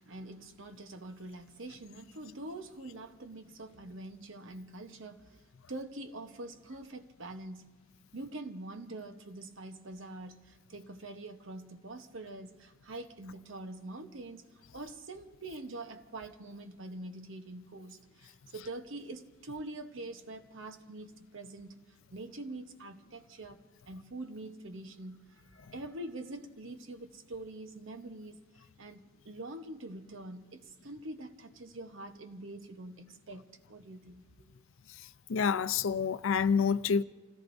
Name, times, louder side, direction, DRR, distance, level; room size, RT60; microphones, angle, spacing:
voice 1, 0.0-5.4 5.7-7.8 8.1-28.4 28.8-34.5, right 2 dB, 65° right, 0.9 m, -45 dB
voice 2, 35.3-37.0, left 6 dB, 70° left, 0.5 m, -27 dB
29.0 x 17.0 x 2.6 m
head